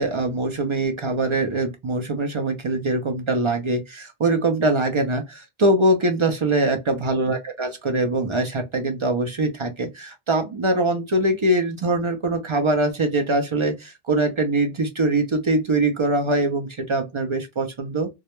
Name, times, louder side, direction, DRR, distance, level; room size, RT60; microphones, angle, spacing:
voice 1, 0.0-18.1, right 2 dB, 45° right, 0.4 m, -23 dB
2.3 x 2.1 x 2.9 m
omnidirectional pair, 1.1 m